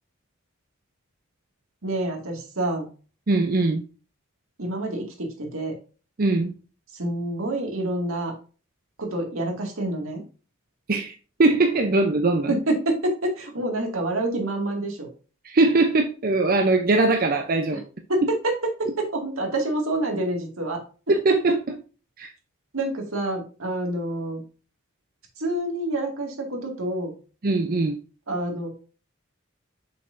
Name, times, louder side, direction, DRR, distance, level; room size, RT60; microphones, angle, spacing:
voice 1, 1.8-2.9 4.6-5.8 6.9-8.3 9.0-10.2 12.5-15.1 18.1-18.5 18.8-20.8 21.3-21.6 22.7-24.4 25.4-27.1 28.3-28.7, right 1 dB, 80° right, 1 dB, 2.1 m, -27 dB
voice 2, 3.3-3.8 6.2-6.5 10.9-11.1 11.4-12.5 15.4-17.8 21.1-21.6 22.2-22.3 27.4-27.9, right 2 dB, 45° right, 5 dB, 0.6 m, -21 dB
6.7 x 5.5 x 2.6 m, 0.35 s
head